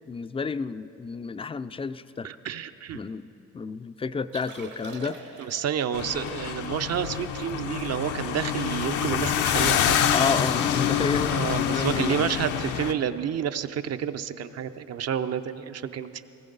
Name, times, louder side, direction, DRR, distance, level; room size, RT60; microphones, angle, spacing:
voice 1, 0.1-2.3 2.9-5.2 10.1-12.4, left 5 dB, 20° left, 13 dB, 0.3 m, -31 dB
voice 2, 2.2-3.0 5.4-10.0 11.3-16.3, right 8 dB, 55° right, 10 dB, 0.6 m, -30 dB
Liquid, 4.2-9.6 10.0-10.1 10.4-10.7 11.0-11.2 11.8-12.0 13.5-13.6, right 5 dB, 75° right, 1.7 m, -47 dB
sound 1, 5.9-12.9, left 9 dB, 80° left, 0.7 m, -26 dB
17.5 x 15.5 x 4.0 m, 2.9 s
cardioid pair, 90°, 30 cm